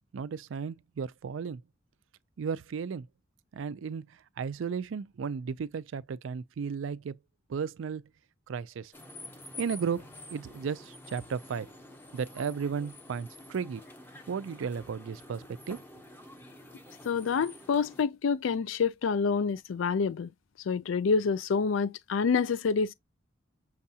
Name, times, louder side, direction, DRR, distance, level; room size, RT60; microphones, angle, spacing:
voice 1, 0.1-1.6 2.4-3.1 3.5-4.1 4.4-7.2 7.5-8.0 8.5-8.9 9.6-11.7 12.1-13.8 14.3-15.8, right 6 dB, 80° right, 0.4 m, -34 dB
sound 1, 8.9-18.0, left 1 dB, 10° left, 0.7 m, -49 dB
voice 2, 17.0-20.3 20.7-22.9, left 5 dB, 80° left, 0.4 m, -27 dB
6.3 x 2.3 x 2.7 m
head